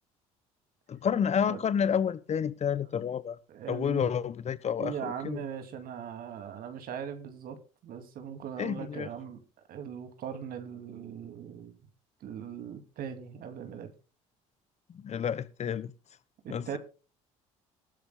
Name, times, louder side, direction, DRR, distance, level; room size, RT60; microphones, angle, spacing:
voice 1, 0.9-3.4 3.7-5.4 8.6-9.1 14.9-15.9 16.5-16.8, left 7 dB, 40° left, 1.0 m, -30 dB
voice 2, 3.5-4.1 4.8-9.4 9.7-11.8 12.2-13.9 16.4-16.8, right 8 dB, 60° right, 2.4 m, -40 dB
19.5 x 12.5 x 2.2 m
hypercardioid pair, 60°, 17 cm